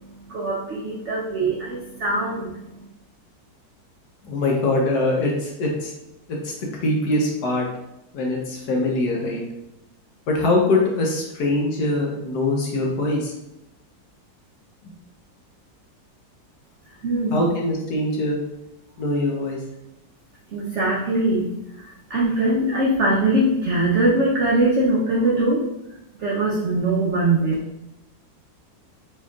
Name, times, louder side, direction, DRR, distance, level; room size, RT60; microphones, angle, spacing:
voice 1, 0.0-2.8 17.0-17.5 20.5-21.5 21.8-25.6 26.2-27.5, right 2 dB, 75° right, -5 dB, 0.6 m, -22 dB
voice 2, 4.2-5.9 6.4-7.7 8.1-9.4 10.3-13.3 17.3-18.4 19.0-19.6, left 2 dB, 65° left, -1 dB, 1.1 m, -23 dB
4.4 x 2.8 x 2.3 m, 0.90 s
omnidirectional pair, 2.0 m